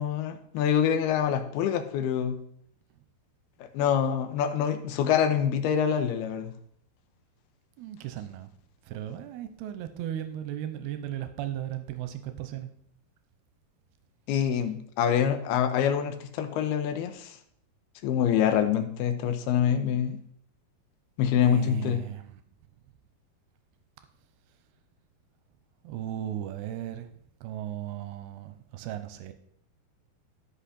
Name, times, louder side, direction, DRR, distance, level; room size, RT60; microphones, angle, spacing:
voice 1, 0.0-2.4 3.7-6.5 14.3-17.4 18.0-20.2 21.2-22.0, left 9 dB, 80° left, 2.7 m, -25 dB
voice 2, 7.8-8.5 8.8-12.7 14.6-14.7 21.4-22.4 25.8-27.1 27.4-29.3, right 11 dB, 90° right, 2.7 m, -36 dB
13.5 x 5.8 x 4.2 m
omnidirectional pair, 4.6 m